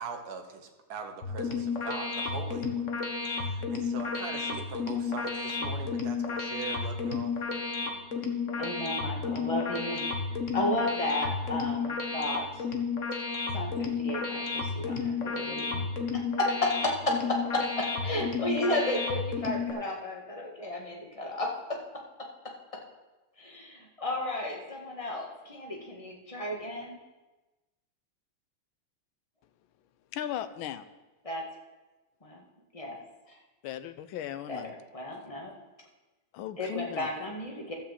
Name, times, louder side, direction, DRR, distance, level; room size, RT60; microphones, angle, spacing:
voice 1, 0.0-2.8 3.2-7.3, right 5 dB, 55° right, 4 dB, 1.6 m, -41 dB
sound 1, 1.2-19.7, left 4 dB, 45° left, 1.3 m, -32 dB
voice 2, 8.6-12.6 13.5-15.9 16.1-21.8 23.4-27.0 31.2-31.5 32.2-32.4 32.7-33.0 33.3-33.4 34.5-35.5 36.6-37.7, left 1 dB, 20° left, 0 dB, 1.5 m, -33 dB
voice 3, 30.1-30.9 33.6-34.7 36.3-37.1, left 11 dB, 85° left, 12 dB, 1.5 m, -37 dB
12.5 x 5.6 x 7.5 m, 1.1 s
omnidirectional pair, 2.2 m